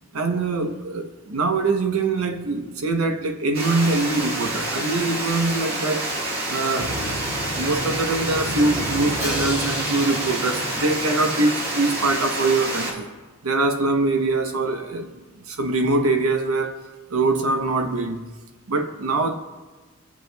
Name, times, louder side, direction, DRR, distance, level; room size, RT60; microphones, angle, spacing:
voice 1, 0.1-6.1 6.5-7.0 7.5-13.1 13.4-15.1 15.5-16.8 17.1-18.3 18.7-19.4, right 3 dB, 75° right, 0.8 m, -23 dB
Water, 3.5-12.9, right 1 dB, 45° right, 2.0 m, -28 dB
Drum, 6.8-11.6, equal, 15° right, 2.2 m, -32 dB
19.5 x 7.0 x 2.3 m
head